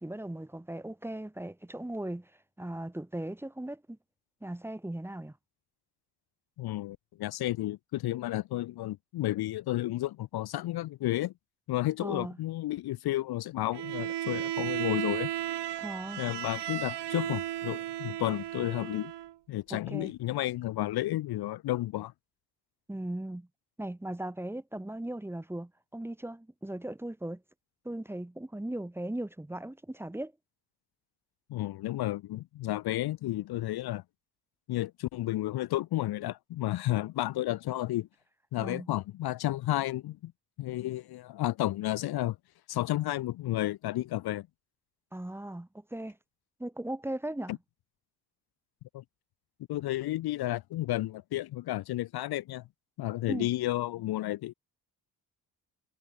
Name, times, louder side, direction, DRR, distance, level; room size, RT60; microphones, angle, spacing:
voice 1, 0.0-2.3 2.6-4.0 4.4-5.3 12.0-12.4 15.8-16.2 19.7-20.1 22.9-23.5 23.8-27.4 27.8-30.3 38.6-38.9 45.1-46.2 46.6-47.6 53.3-53.5, right 1 dB, 5° right, 1.4 m, -38 dB
voice 2, 6.6-11.3 11.7-15.3 16.2-19.1 19.5-22.1 31.5-34.0 34.7-38.1 38.5-40.3 40.6-42.4 42.7-44.5 48.9-49.0 49.7-52.6 53.0-54.5, left 15 dB, 70° left, 0.6 m, -32 dB
Bowed string instrument, 13.7-19.3, right 13 dB, 90° right, 2.5 m, -35 dB
cardioid pair, 150°, 40 cm